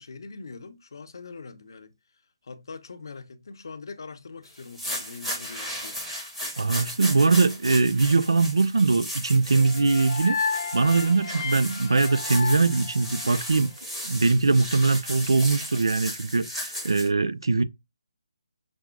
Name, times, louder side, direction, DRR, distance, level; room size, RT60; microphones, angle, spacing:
voice 1, 0.0-1.9 2.4-6.0, left 4 dB, 65° left, 0.7 m, -42 dB
sound 1, 4.6-17.1, equal, 5° right, 1.0 m, -36 dB
voice 2, 6.6-10.4 10.7-13.7 14.0-17.6, right 3 dB, 80° right, 0.4 m, -22 dB
sound 2, 9.5-13.7, left 5 dB, 25° left, 0.6 m, -33 dB
6.1 x 2.1 x 2.3 m
figure-of-eight pair, 155°, 2 cm